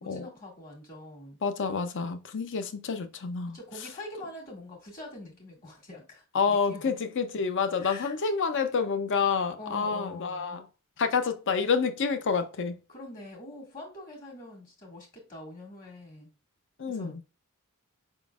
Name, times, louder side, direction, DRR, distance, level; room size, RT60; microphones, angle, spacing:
voice 1, 0.0-1.4 3.5-6.8 7.8-8.1 9.6-10.6 12.9-16.3 16.9-17.1, left 2 dB, 40° left, 1.9 m, -44 dB
voice 2, 1.4-3.6 6.3-10.6 11.0-12.8 16.8-17.2, left 5 dB, 60° left, 0.6 m, -28 dB
5.0 x 3.7 x 2.3 m
head